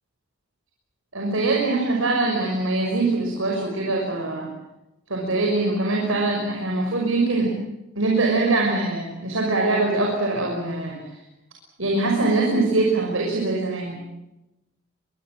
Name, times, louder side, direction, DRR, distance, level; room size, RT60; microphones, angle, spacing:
voice 1, 1.1-4.5 5.1-7.5 8.0-11.0 11.8-14.0, right 2 dB, 85° right, 0 dB, 6.0 m, -23 dB
24.0 x 23.0 x 7.7 m, 0.93 s
head